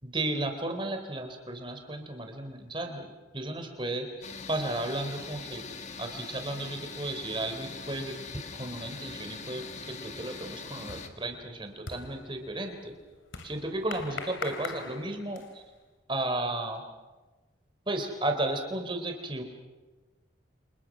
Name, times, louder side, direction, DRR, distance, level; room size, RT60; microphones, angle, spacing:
voice 1, 0.0-4.1 4.5-5.6 6.0-8.1 8.6-9.6 10.0-12.9 13.4-15.6 16.1-16.8 17.9-19.4, right 2 dB, 25° right, 5 dB, 3.7 m, -34 dB
sound 1, 4.2-11.1, left 4 dB, 35° left, 1.8 m, -42 dB
sound 2, 10.9-15.7, left 4 dB, 90° left, 2.9 m, -43 dB
30.0 x 26.5 x 6.2 m, 1.2 s
head